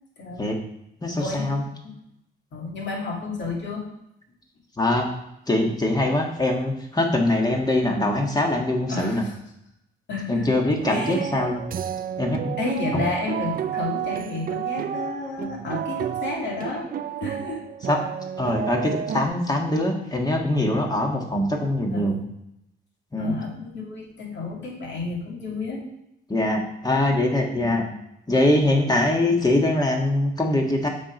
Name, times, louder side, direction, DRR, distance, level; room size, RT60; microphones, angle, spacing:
voice 1, 0.2-0.6 1.2-1.5 1.8-1.9 2.5-3.8 8.9-9.4 10.1-10.6 10.9-11.3 12.6-16.9 17.2-17.6 21.9-22.3 23.2-25.8 27.6-28.0, left 3 dB, 65° left, -2 dB, 2.4 m, -31 dB
voice 2, 1.0-1.7 4.8-5.1 5.5-9.3 10.3-11.7 12.2-12.6 12.9-13.0 17.9-18.0 18.4-22.2 23.1-23.3 26.3-27.8 28.3-30.9, left 1 dB, 20° left, 1 dB, 1.7 m, -23 dB
sound 1, 10.8-19.3, right 9 dB, 45° right, 0.4 m, -31 dB
7.2 x 4.4 x 5.1 m, 0.81 s
cardioid pair, 90°, 20 cm